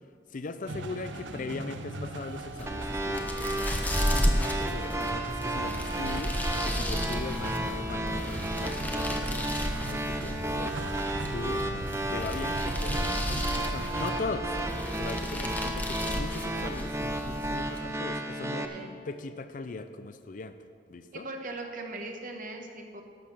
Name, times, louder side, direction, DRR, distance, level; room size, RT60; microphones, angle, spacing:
voice 1, 0.3-14.6 15.0-18.7 19.1-20.6 20.9-21.3, left 3 dB, 45° left, 10 dB, 0.5 m, -40 dB
sound 1, 0.7-13.9, right 2 dB, 90° right, 0.8 m, -40 dB
sound 2, 2.4-17.9, equal, 10° left, 1.1 m, -33 dB
sound 3, 2.7-18.7, right 1 dB, 15° right, 0.7 m, -33 dB
voice 2, 18.5-19.0 21.1-23.0, right 2 dB, 50° right, 3 dB, 1.2 m, -39 dB
12.0 x 6.6 x 7.4 m, 2.1 s
head